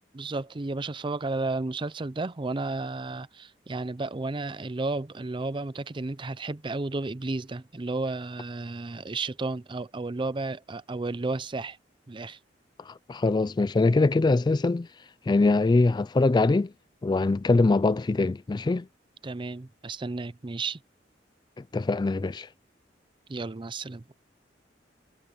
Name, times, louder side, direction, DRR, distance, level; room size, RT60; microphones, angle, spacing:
voice 1, 0.1-11.8 12.1-12.4 19.2-20.8 23.3-24.0, right 3 dB, 25° right, 0.5 m, -32 dB
voice 2, 12.9-14.9 15.3-16.7 17.0-18.9 21.7-22.5, left 3 dB, 25° left, 0.3 m, -23 dB
head